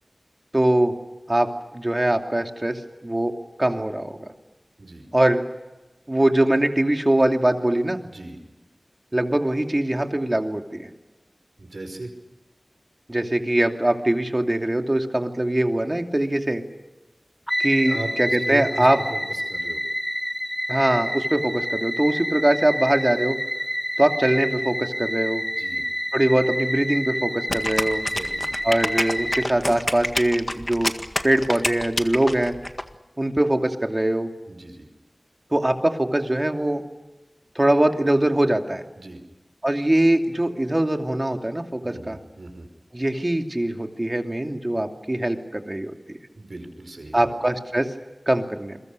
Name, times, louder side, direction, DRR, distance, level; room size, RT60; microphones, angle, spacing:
voice 1, 0.5-1.0 1.3-3.3 3.6-4.2 5.1-5.4 6.1-8.0 9.1-10.9 13.1-16.6 17.6-19.0 20.7-23.3 24.0-25.4 26.1-28.1 28.6-30.9 31.2-32.5 33.2-34.3 35.5-36.8 37.5-38.8 39.6-42.2 42.9-45.9 47.1-47.9 48.3-48.8, right 1 dB, 30° right, 4 dB, 2.7 m, -22 dB
voice 2, 8.0-8.4 11.6-12.1 17.8-19.8 25.5-25.9 28.0-28.6 34.5-34.9 39.0-39.2 41.8-42.7 46.3-47.4, right 2 dB, 70° right, 6 dB, 5.4 m, -37 dB
sound 1, 17.5-29.5, equal, 5° left, 0.7 m, -28 dB
sound 2, 27.5-32.8, left 1 dB, 30° left, 1.8 m, -27 dB
28.5 x 22.5 x 6.8 m, 1.1 s
wide cardioid pair, 45°, 0 cm